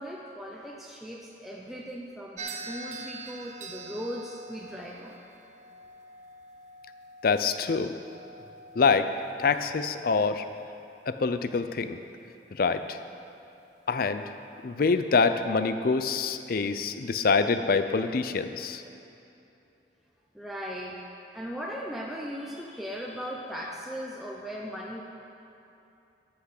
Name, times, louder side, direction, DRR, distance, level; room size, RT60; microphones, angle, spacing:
voice 1, 0.0-5.2 20.3-21.0 21.3-25.0, equal, ahead, -3 dB, 0.7 m, -38 dB
sound 1, 2.4-10.7, right 3 dB, 45° right, 0.7 m, -45 dB
voice 2, 7.2-7.9 8.8-9.1 9.4-10.4 11.1-12.0 12.5-13.0 13.9-14.2 14.6-18.8, left 4 dB, 55° left, 10 dB, 0.5 m, -25 dB
13.5 x 5.9 x 6.5 m, 2.9 s
head